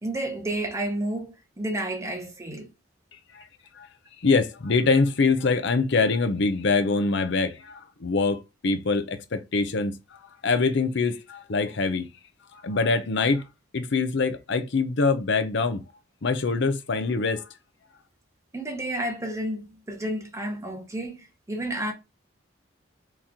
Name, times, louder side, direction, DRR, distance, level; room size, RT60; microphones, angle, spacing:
voice 1, 0.0-2.7 18.5-21.9, right 1 dB, 15° right, 1.0 m, -31 dB
voice 2, 4.2-12.1 12.5-13.4 13.7-15.8 16.2-17.5, left 4 dB, 60° left, 0.7 m, -24 dB
4.2 x 3.1 x 3.7 m
head